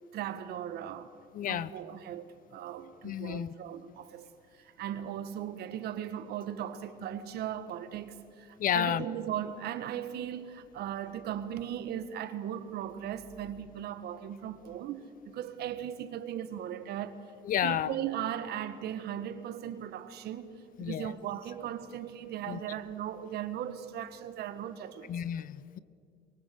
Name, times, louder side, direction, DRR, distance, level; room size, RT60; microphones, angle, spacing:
voice 1, 0.1-1.1 1.4-4.3 4.6-17.2 17.6-25.1, right 10 dB, 65° right, 1.7 m, -38 dB
voice 2, 1.3-1.7 3.0-3.5 8.6-9.1 17.5-17.9 20.8-21.1 22.5-22.6 25.1-25.8, left 10 dB, 50° left, 0.8 m, -31 dB
23.0 x 22.5 x 7.9 m
cardioid pair, 110°, 18 cm